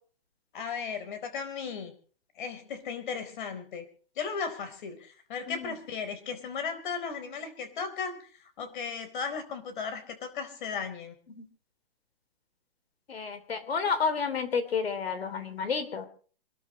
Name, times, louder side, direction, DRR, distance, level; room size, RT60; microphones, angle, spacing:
voice 1, 0.5-1.9 2.4-3.9 4.2-11.2, left 6 dB, 55° left, 8 dB, 4.3 m, -36 dB
voice 2, 13.1-16.1, left 5 dB, 85° left, 9 dB, 3.2 m, -30 dB
27.0 x 12.5 x 3.2 m, 0.42 s
hypercardioid pair, 150°, 30 cm